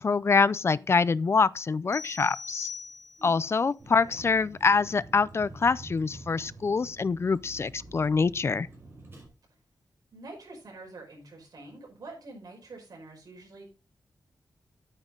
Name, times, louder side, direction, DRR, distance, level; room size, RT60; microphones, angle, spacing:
voice 1, 0.0-2.7 3.2-8.7, left 4 dB, 40° left, 0.4 m, -25 dB
sound 1, 1.9-3.4, left 5 dB, 5° left, 4.8 m, -40 dB
Vehicle, 3.8-9.3, right 2 dB, 35° right, 5.5 m, -48 dB
voice 2, 10.1-13.7, right 2 dB, 65° right, 5.1 m, -46 dB
9.2 x 8.9 x 3.8 m
wide cardioid pair, 130°, 7 cm